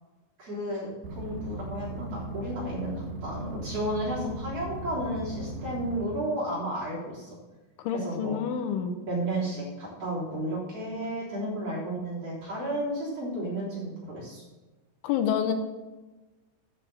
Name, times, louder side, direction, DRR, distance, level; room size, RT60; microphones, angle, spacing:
voice 1, 0.4-7.3 7.9-8.4 9.0-14.4, right 1 dB, 35° right, -8 dB, 4.0 m, -33 dB
sound 1, 1.0-6.0, right 2 dB, 85° right, 4.1 m, -38 dB
voice 2, 7.8-9.0 15.0-15.5, left 8 dB, 85° left, 7 dB, 3.1 m, -28 dB
9.7 x 6.5 x 7.9 m, 1.2 s
omnidirectional pair, 5.4 m